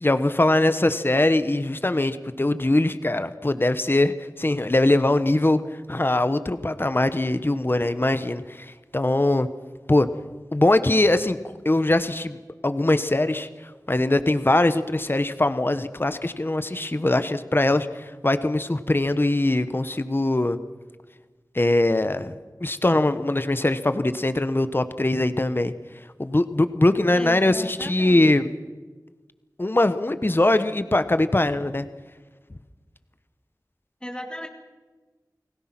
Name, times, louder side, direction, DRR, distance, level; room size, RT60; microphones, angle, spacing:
voice 1, 0.0-5.6 5.9-9.5 9.9-10.1 10.5-20.6 21.5-25.7 26.2-28.5 29.6-31.9, left 2 dB, 35° left, 11 dB, 1.1 m, -22 dB
voice 2, 27.1-28.2 34.0-34.5, equal, 15° left, 3 dB, 2.2 m, -35 dB
30.0 x 19.5 x 6.0 m, 1.3 s
wide cardioid pair, 45°, 7 cm